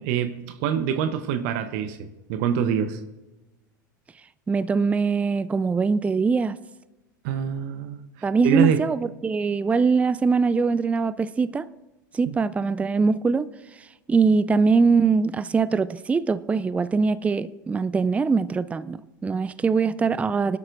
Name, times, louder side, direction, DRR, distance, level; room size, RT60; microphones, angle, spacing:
voice 1, 0.0-3.0 7.2-8.8 12.3-12.4, right 8 dB, 55° right, 0.9 m, -25 dB
voice 2, 4.5-6.6 8.2-11.7 12.1-13.5 14.1-20.6, right 4 dB, 15° right, 0.4 m, -22 dB
23.0 x 12.0 x 2.6 m
figure-of-eight pair, 85°, 10 cm